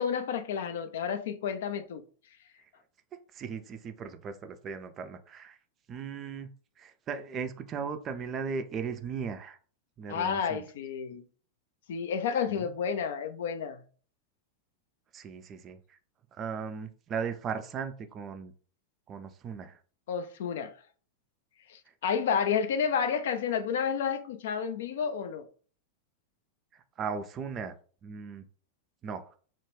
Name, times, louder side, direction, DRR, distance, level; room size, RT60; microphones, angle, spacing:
voice 1, 0.0-2.0 10.1-11.2 11.9-13.8 20.1-20.7 21.7-25.5, left 7 dB, 60° left, 0.3 m, -30 dB
voice 2, 3.3-5.6 5.9-9.6 10.0-10.6 12.5-12.7 15.1-16.0 16.4-18.5 19.1-19.8 27.0-27.8 28.0-28.5 29.0-29.3, right 6 dB, 30° right, 0.3 m, -37 dB
2.2 x 2.1 x 3.2 m
figure-of-eight pair, 90°, 0 cm